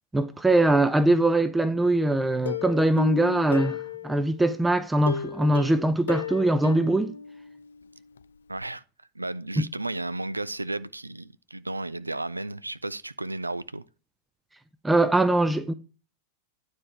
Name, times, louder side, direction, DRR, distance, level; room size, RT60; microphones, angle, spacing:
voice 1, 0.1-3.8 4.0-7.1 9.6-9.7 14.8-15.7, right 1 dB, 10° right, 0.5 m, -22 dB
Plucked string instrument, 2.5-4.4 5.1-7.9 8.2-8.3 8.6-8.7, left 6 dB, 70° left, 0.4 m, -34 dB
voice 2, 8.5-8.8 9.2-13.8, right 2 dB, 85° right, 0.4 m, -33 dB
9.8 x 4.4 x 4.7 m
figure-of-eight pair, 90°, 0 cm